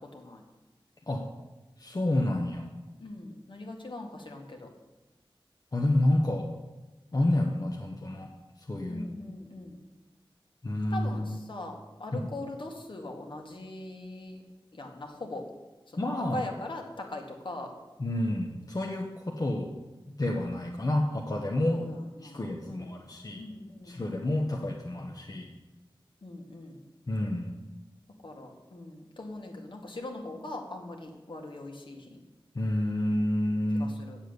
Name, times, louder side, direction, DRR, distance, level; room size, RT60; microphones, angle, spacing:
voice 1, 1.8-2.7 5.7-6.5 7.1-8.3 8.6-9.1 10.6-11.4 12.1-12.3 16.0-16.4 18.0-19.7 20.2-21.8 22.2-23.4 23.8-25.5 27.1-27.5 32.5-33.9, left 1 dB, 45° left, 0 dB, 1.1 m, -29 dB
voice 2, 3.0-4.7 8.9-9.8 10.9-14.4 14.7-15.5 15.9-17.7 21.7-22.4 22.7-22.9 23.4-24.2 26.2-26.8 28.2-32.2 33.7-34.2, left 2 dB, 65° left, 2 dB, 1.9 m, -41 dB
8.8 x 7.4 x 8.1 m, 1.1 s
wide cardioid pair, 85°, 9 cm